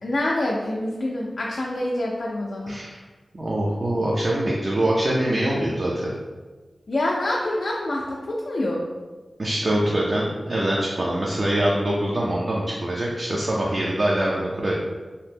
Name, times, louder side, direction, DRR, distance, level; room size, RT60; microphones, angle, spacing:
voice 1, 0.0-2.8 6.9-8.8, left 1 dB, 70° left, -3 dB, 0.3 m, -26 dB
voice 2, 2.7-3.0 3.3-6.1 9.4-14.7, right 1 dB, 55° right, -4 dB, 0.4 m, -24 dB
2.7 x 2.1 x 3.4 m, 1.3 s
cardioid pair, 55°, 0 cm